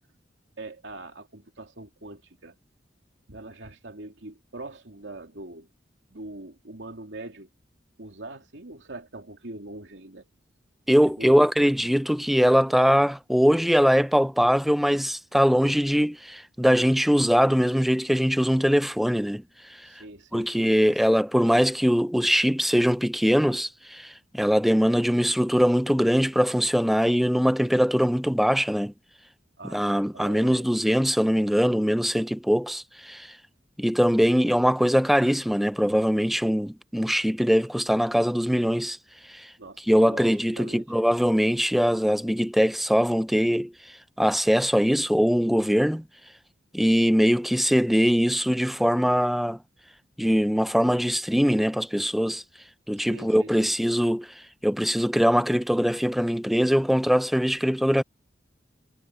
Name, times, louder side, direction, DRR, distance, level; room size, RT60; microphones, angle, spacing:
voice 1, 0.6-2.6 3.3-5.7 6.1-7.5 8.0-10.3 11.2-11.4 19.8-20.5 20.9-21.0 29.6-30.7 39.6-40.9 53.0-53.7 54.0-54.1, right 2 dB, 75° right, 2.8 m, -42 dB
voice 2, 10.9-19.4 19.7-19.9 20.3-28.9 29.7-33.4 33.8-39.0 39.3-39.5 39.9-46.0 46.7-49.6 50.2-52.4 52.9-54.3 54.6-58.0, equal, ahead, 0.4 m, -22 dB
head